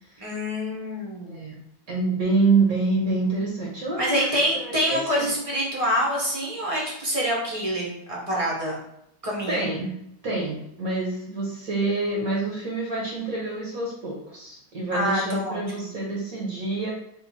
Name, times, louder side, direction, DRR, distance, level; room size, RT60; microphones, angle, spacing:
voice 1, 0.2-1.5 4.0-8.8 9.2-9.7 14.9-15.9, equal, 25° right, -4 dB, 0.8 m, -26 dB
voice 2, 1.9-4.3 4.5-5.3 9.5-9.9 10.2-16.9, right 3 dB, 60° right, -3 dB, 1.3 m, -26 dB
3.6 x 2.5 x 4.2 m, 0.75 s
omnidirectional pair, 1.9 m